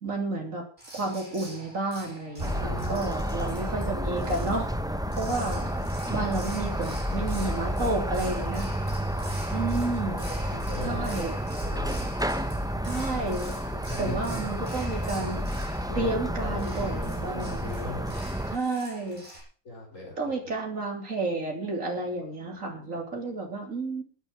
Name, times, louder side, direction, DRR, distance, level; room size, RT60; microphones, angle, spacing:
voice 1, 0.0-0.6 0.9-4.7 5.2-5.7 6.1-8.7 9.5-10.2 10.9-11.3 12.8-13.6 14.0-15.5 16.0-17.7 18.5-19.3 20.2-24.0, right 2 dB, 60° right, 2 dB, 3.8 m, -31 dB
sound 1, 0.8-19.4, right 1 dB, 40° right, 7.6 m, -45 dB
sound 2, 2.4-18.6, equal, 5° right, 0.6 m, -30 dB
voice 2, 2.5-3.6 5.2-5.5 7.2-8.1 8.3-8.6 10.0-11.2 11.6-12.1 13.4-14.2 15.9-18.2 19.6-20.5 22.1-22.2 22.7-23.0, left 2 dB, 60° left, 0 dB, 5.7 m, -41 dB
12.5 x 9.8 x 7.7 m, 0.44 s
omnidirectional pair, 1.5 m